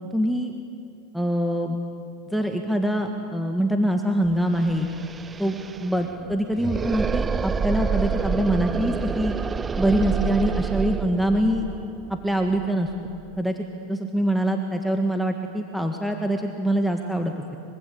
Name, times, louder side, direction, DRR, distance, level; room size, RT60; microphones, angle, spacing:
voice 1, 0.1-0.5 1.1-1.8 2.3-4.9 5.4-5.6 5.8-9.4 9.8-11.7 12.1-12.9 13.4-13.5 13.9-17.6, right 1 dB, ahead, 3 dB, 1.7 m, -24 dB
sound 1, 4.3-4.4 4.5-13.4, right 5 dB, 20° right, 0.6 m, -28 dB
24.5 x 24.5 x 8.7 m, 2.4 s
supercardioid pair, 120°, 0 cm